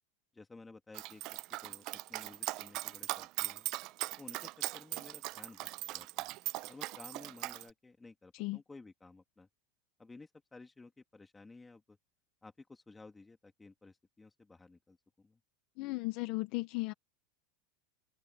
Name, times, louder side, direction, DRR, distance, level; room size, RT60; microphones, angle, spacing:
voice 1, 0.3-1.2 1.6-3.7 4.2-6.3 6.7-9.5 10.0-12.0 12.4-15.4, left 3 dB, 10° left, 2.7 m, -55 dB
Dog, 0.9-7.6, right 19 dB, 45° right, 0.6 m, -39 dB
voice 2, 15.8-16.9, left 22 dB, 50° left, 0.9 m, -36 dB
supercardioid pair, 155°, 0 cm